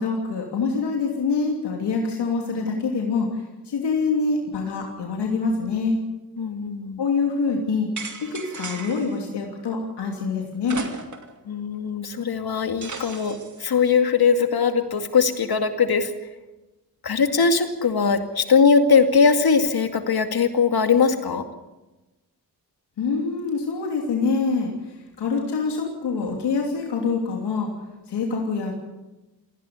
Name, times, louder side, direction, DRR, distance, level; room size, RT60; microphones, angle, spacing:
voice 1, 0.0-6.0 7.0-7.9 8.2-10.8 23.0-27.7 28.1-28.7, left 4 dB, 85° left, 0 dB, 3.1 m, -25 dB
voice 2, 6.4-7.0 11.5-16.1 17.0-21.5, left 5 dB, 65° left, 7 dB, 2.4 m, -20 dB
sound 1, 8.0-9.2 10.6-11.4 11.7-11.8 12.8-13.7, right 4 dB, 45° right, 2.8 m, -35 dB
18.5 x 16.5 x 9.5 m, 1.1 s
cardioid pair, 60°, 40 cm